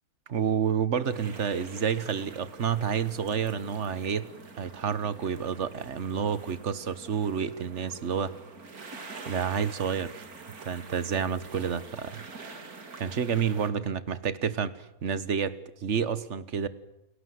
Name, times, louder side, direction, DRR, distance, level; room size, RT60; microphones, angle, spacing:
voice 1, 0.3-4.3 4.6-8.3 9.3-10.3 10.6-12.2 13.0-14.7 15.0-16.7, right 7 dB, 55° right, 16 dB, 1.5 m, -29 dB
sound 1, 1.0-13.7, right 4 dB, 80° right, 2.9 m, -46 dB
29.0 x 18.0 x 7.8 m, 0.91 s
omnidirectional pair, 1.6 m